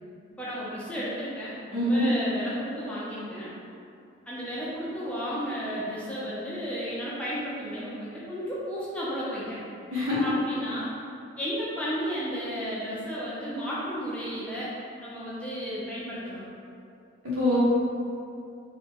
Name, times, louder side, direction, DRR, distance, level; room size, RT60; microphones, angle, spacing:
voice 1, 0.4-3.5 4.3-9.6 10.2-10.9 11.4-14.7 15.0-16.5, equal, 5° left, -8 dB, 0.7 m, -33 dB
voice 2, 1.7-2.1 9.9-10.3 17.2-17.6, left 1 dB, 90° right, -9 dB, 1.5 m, -25 dB
4.1 x 3.0 x 3.0 m, 2.6 s
head